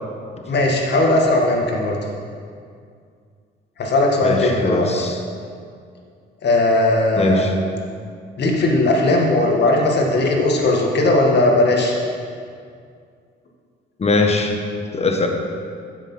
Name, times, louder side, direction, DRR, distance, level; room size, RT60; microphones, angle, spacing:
voice 1, 0.5-2.0 3.8-5.1 6.4-7.5 8.4-12.0, left 2 dB, 60° left, 0 dB, 1.9 m, -18 dB
voice 2, 4.2-5.2 7.2-7.5 14.0-14.6 14.9-15.3, left 3 dB, 30° left, 3 dB, 1.3 m, -20 dB
9.4 x 7.3 x 5.7 m, 2.3 s
cardioid pair, 90°, 20 cm